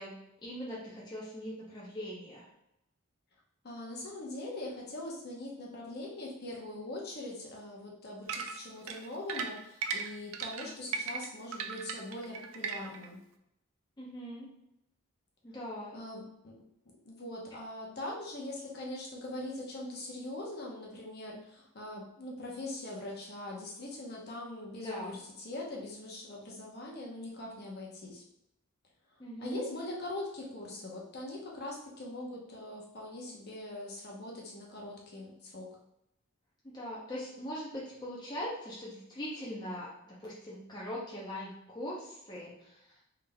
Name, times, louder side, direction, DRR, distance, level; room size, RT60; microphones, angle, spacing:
voice 1, 0.0-2.5 14.0-14.5 15.4-16.0 24.8-25.2 29.2-29.6 36.6-39.9 40.2-43.0, equal, 20° left, -6 dB, 0.6 m, -41 dB
voice 2, 3.6-13.2 15.9-16.5 17.0-28.2 29.4-35.7, left 1 dB, 50° left, -2 dB, 0.8 m, -42 dB
sound 1, 8.3-13.1, right 5 dB, 85° right, 0.4 m, -37 dB
3.9 x 3.4 x 2.2 m, 0.82 s
head